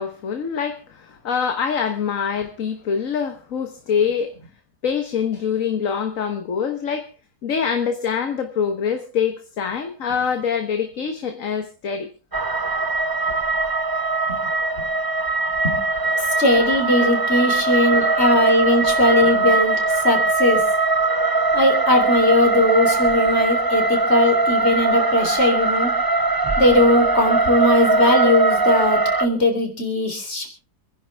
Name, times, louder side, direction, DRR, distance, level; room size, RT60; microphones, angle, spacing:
voice 1, 0.0-4.3 4.8-7.1 7.4-12.1 17.4-17.5 18.1-18.3 18.7-18.8, left 7 dB, 55° left, 1.6 m, -25 dB
sound 1, 12.3-29.3, right 3 dB, 25° right, 0.5 m, -21 dB
voice 2, 16.2-20.6 21.5-25.9 26.6-30.5, left 1 dB, 40° left, 3.9 m, -19 dB
27.5 x 10.5 x 3.5 m
omnidirectional pair, 1.7 m